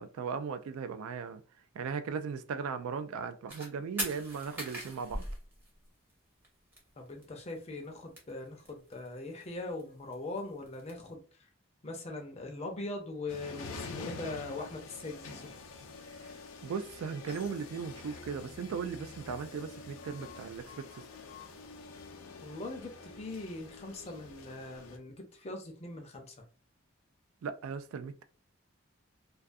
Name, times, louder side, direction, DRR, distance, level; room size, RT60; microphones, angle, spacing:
voice 1, 0.0-1.4 1.7-5.3 16.6-21.0 27.4-28.2, right 6 dB, 85° right, 0.3 m, -37 dB
sound 1, 3.5-3.7 4.0-6.1 6.4-6.5 6.7-6.8 7.1-7.6 7.8-9.1 9.4-10.9, right 1 dB, 10° right, 0.6 m, -40 dB
voice 2, 7.0-11.5 11.8-15.5 22.4-26.3, left 2 dB, 30° left, 0.5 m, -41 dB
sound 2, 13.3-25.0, left 4 dB, 85° left, 0.5 m, -47 dB
2.3 x 2.3 x 2.5 m
head